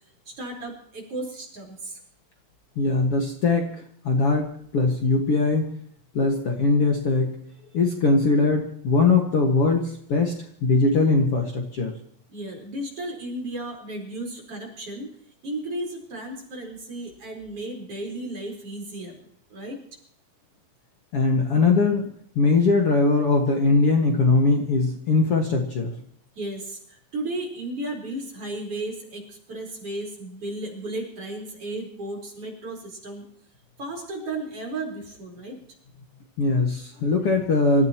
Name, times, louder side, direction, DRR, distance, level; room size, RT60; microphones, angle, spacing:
voice 1, 0.3-2.0 12.3-15.1 15.4-19.8 26.4-33.2 33.8-35.6, right 1 dB, 40° right, 0 dB, 5.3 m, -34 dB
voice 2, 2.8-3.7 4.0-4.5 4.7-5.7 6.1-7.3 7.7-10.3 10.6-11.9 21.1-22.0 22.4-25.9 36.4-37.9, left 3 dB, 50° left, 1 dB, 2.2 m, -21 dB
26.5 x 15.0 x 3.0 m, 0.63 s
omnidirectional pair, 4.0 m